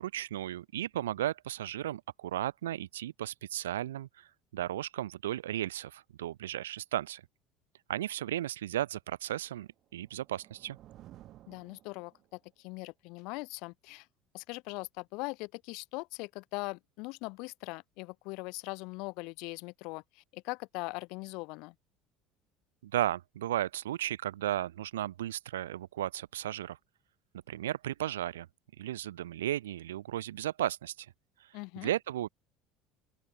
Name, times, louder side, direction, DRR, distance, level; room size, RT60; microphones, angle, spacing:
voice 1, 0.0-7.2 7.9-10.8 22.8-26.8 27.5-28.5 28.8-31.1 31.8-32.3, right 12 dB, 80° right, 0.8 m, -35 dB
sound 1, 9.8-12.5, right 14 dB, 55° right, 6.1 m, -56 dB
voice 2, 11.5-14.1 14.3-21.7 31.5-31.9, left 27 dB, 65° left, 0.5 m, -41 dB
open air
hypercardioid pair, 65°, 0 cm